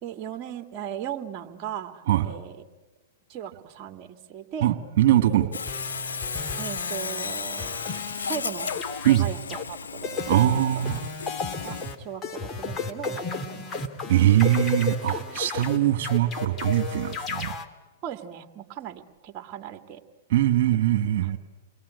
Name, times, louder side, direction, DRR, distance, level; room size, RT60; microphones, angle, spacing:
voice 1, 0.0-2.6 3.3-4.7 6.6-7.8 8.2-8.7 9.1-9.4 9.7-10.8 11.6-13.8 18.0-20.0, right 9 dB, 40° right, 6 dB, 2.5 m, -37 dB
voice 2, 2.1-2.4 4.6-5.5 9.0-9.3 10.3-11.0 14.1-17.5 20.3-21.4, right 12 dB, 55° right, 8 dB, 2.4 m, -22 dB
Sawing, 5.5-11.9, left 6 dB, 85° left, 1.0 m, -34 dB
sound 1, 5.7-7.3 7.6-8.4 8.7-9.6 10.0-17.7, left 4 dB, 20° left, 2.2 m, -34 dB
29.5 x 22.5 x 8.5 m, 1.2 s
hypercardioid pair, 120°, 0 cm